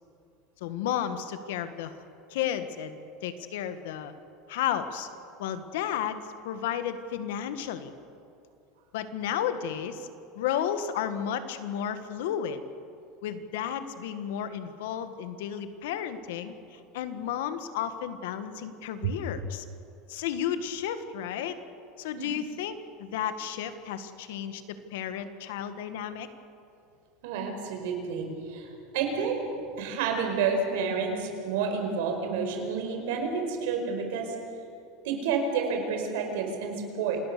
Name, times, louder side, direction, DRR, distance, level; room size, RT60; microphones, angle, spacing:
voice 1, 0.6-2.0 2.3-4.1 4.5-5.1 5.4-7.9 8.9-10.1 10.3-12.6 13.2-19.6 20.1-21.6 22.0-24.6 24.9-26.3, left 9 dB, 80° left, 10 dB, 1.7 m, -33 dB
voice 2, 27.2-29.4 29.8-34.3 35.0-37.2, right 5 dB, 70° right, 3 dB, 5.0 m, -30 dB
27.5 x 19.0 x 6.9 m, 2.6 s
supercardioid pair, 170°, 0 cm